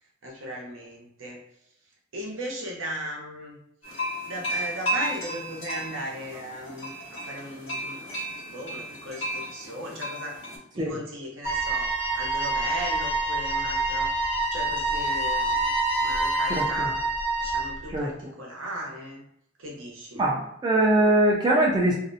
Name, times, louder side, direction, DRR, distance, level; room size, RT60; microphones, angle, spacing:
voice 1, 0.2-1.4 2.1-3.6 4.2-8.1 8.5-10.4 10.7-14.1 14.5-15.7 16.0-17.0 17.4-19.2 19.6-20.2, right 1 dB, 85° right, -2 dB, 0.8 m, -37 dB
sound 1, 3.8-10.6, right 1 dB, 90° left, 1.0 m, -34 dB
Wind instrument woodwind instrument, 11.4-17.8, right 3 dB, 40° right, 0.7 m, -27 dB
Wind instrument woodwind instrument 2, 11.5-16.7, left 1 dB, 70° left, 0.4 m, -32 dB
voice 2, 16.5-16.9 17.9-18.1 20.1-21.9, right 1 dB, 20° right, -3 dB, 0.3 m, -22 dB
2.6 x 2.0 x 2.5 m, 0.75 s
head